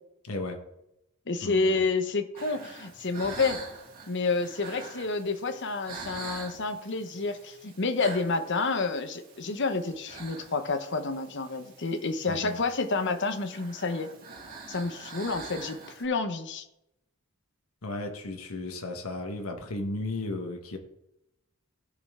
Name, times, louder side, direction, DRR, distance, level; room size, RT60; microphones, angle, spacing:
voice 1, 0.2-0.6 1.4-1.8 12.3-12.6 17.8-20.8, left 2 dB, 80° left, 4 dB, 1.4 m, -35 dB
voice 2, 1.3-3.6 4.1-14.1 14.7-16.6, left 3 dB, 55° left, 8 dB, 1.0 m, -29 dB
sound 1, 2.3-16.0, right 4 dB, 45° right, 2.3 m, -45 dB
16.0 x 5.4 x 3.7 m, 0.84 s
head